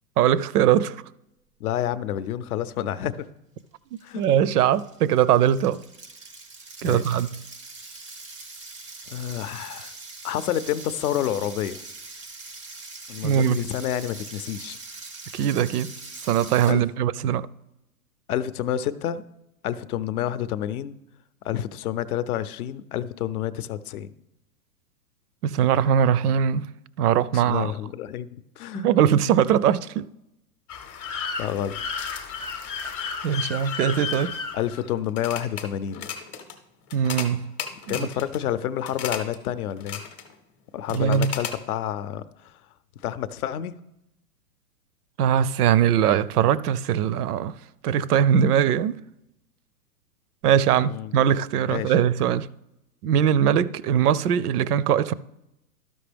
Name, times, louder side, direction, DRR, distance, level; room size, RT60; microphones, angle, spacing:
voice 1, 0.2-1.0 3.9-5.8 6.8-7.3 13.2-13.6 15.3-15.9 16.2-17.5 25.4-26.7 27.0-27.7 28.7-30.1 33.2-34.4 36.9-37.5 37.9-38.1 40.9-41.3 45.2-47.5 47.8-49.0 50.4-52.5 53.0-55.1, right 9 dB, 70° right, 0.5 m, -21 dB
voice 2, 1.6-3.2 4.0-4.2 6.8-7.2 9.1-9.9 10.2-11.8 13.1-14.8 16.7-16.8 18.3-19.2 19.6-21.0 21.4-24.1 27.3-28.3 28.6-28.9 31.4-31.8 34.5-36.1 37.9-40.0 40.7-42.5 43.0-43.7 50.8-51.2 51.7-51.9, left 11 dB, 65° left, 0.6 m, -29 dB
sound 1, 3.6-3.7 4.0-16.7, right 3 dB, 25° right, 0.3 m, -42 dB
sound 2, 30.7-35.6 35.9-36.5 36.9-37.3 37.6-38.4 38.8-39.3 39.7-40.3 40.9-41.5, left 6 dB, 20° left, 0.7 m, -33 dB
12.5 x 5.2 x 3.4 m
hypercardioid pair, 145°, 48 cm